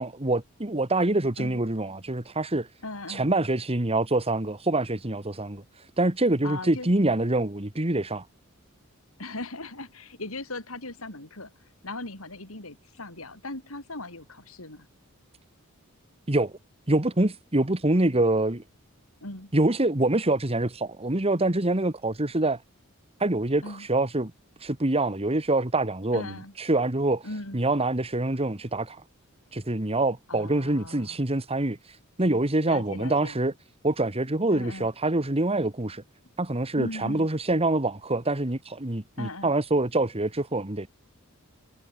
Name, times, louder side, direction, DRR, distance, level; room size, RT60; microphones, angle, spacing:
voice 1, 0.0-2.7 3.1-8.3 16.3-16.5 16.9-18.6 19.5-22.6 23.2-24.3 24.6-27.3 27.5-29.0 29.5-33.5 33.8-36.0 36.4-40.9, right 2 dB, 30° right, 1.9 m, -25 dB
voice 2, 2.8-3.3 6.4-7.0 9.2-11.5 11.8-14.9 19.2-19.5 23.6-23.9 26.1-26.5 27.2-27.6 30.3-31.2 32.7-33.4 34.5-34.9 36.7-37.3 39.2-39.5, left 2 dB, 70° left, 6.2 m, -38 dB
head